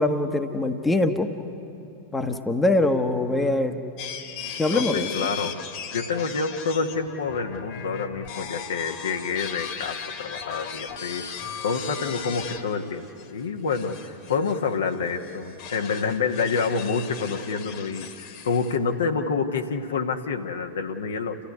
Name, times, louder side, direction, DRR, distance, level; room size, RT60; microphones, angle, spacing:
voice 1, 0.0-1.4 2.1-3.8 4.6-5.3, left 2 dB, 10° left, 6 dB, 1.2 m, -23 dB
sound 1, 4.0-12.6 13.0-13.3 13.7-18.8, left 7 dB, 45° left, 1.9 m, -37 dB
voice 2, 4.7-5.6 5.9-11.2 11.6-21.4, left 5 dB, 65° left, 4 dB, 1.3 m, -28 dB
29.0 x 13.5 x 9.6 m, 2.8 s
figure-of-eight pair, 90°, 0 cm